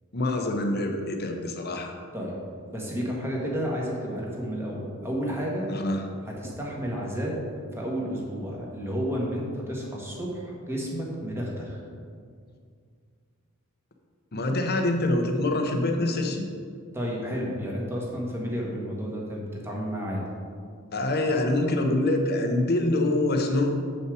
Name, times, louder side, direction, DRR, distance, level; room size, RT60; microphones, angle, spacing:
voice 1, 0.1-1.9 5.7-6.0 14.3-16.5 20.9-23.7, left 1 dB, 45° left, 3 dB, 0.8 m, -25 dB
voice 2, 2.7-5.7 6.2-7.4 7.7-11.8 16.9-20.3, equal, 10° right, -3 dB, 1.4 m, -31 dB
7.5 x 5.6 x 4.8 m, 2.2 s
head